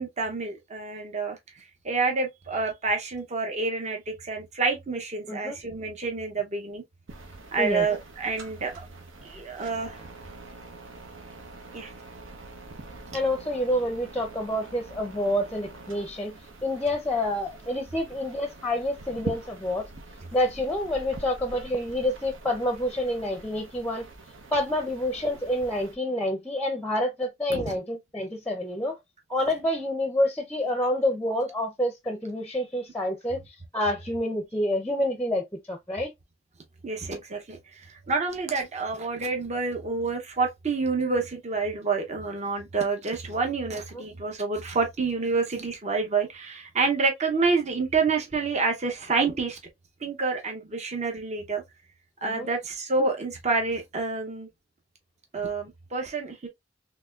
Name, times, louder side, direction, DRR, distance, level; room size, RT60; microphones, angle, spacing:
voice 1, 0.0-6.8 7.5-8.7 9.2-10.0 11.7-11.9 27.5-27.8 36.8-49.6 50.0-51.6 52.2-54.5 55.3-56.5, right 4 dB, 35° right, 0.8 m, -28 dB
sound 1, 7.1-25.9, right 2 dB, 80° right, 0.9 m, -44 dB
voice 2, 13.1-16.3 16.6-19.9 20.3-24.1 24.5-29.0 29.3-36.1 43.9-44.0 52.2-52.5, left 1 dB, 5° left, 0.6 m, -28 dB
4.0 x 3.1 x 2.4 m
head